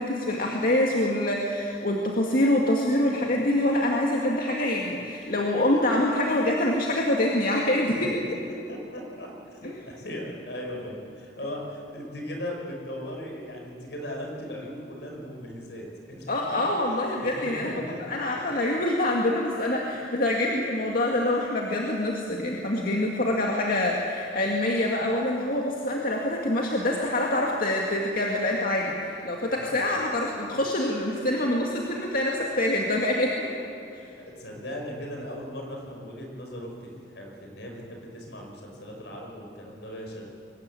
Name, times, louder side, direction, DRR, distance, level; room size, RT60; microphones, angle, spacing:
voice 1, 0.0-8.2 9.6-9.7 16.3-17.7 18.0-33.5 34.0-34.1, left 1 dB, 55° left, -1 dB, 2.1 m, -25 dB
voice 2, 3.0-3.3 8.5-16.3 17.2-18.0 23.2-23.3 29.6-30.1 34.0-40.3, equal, 75° left, 1 dB, 5.6 m, -38 dB
23.0 x 20.0 x 8.5 m, 2.6 s
head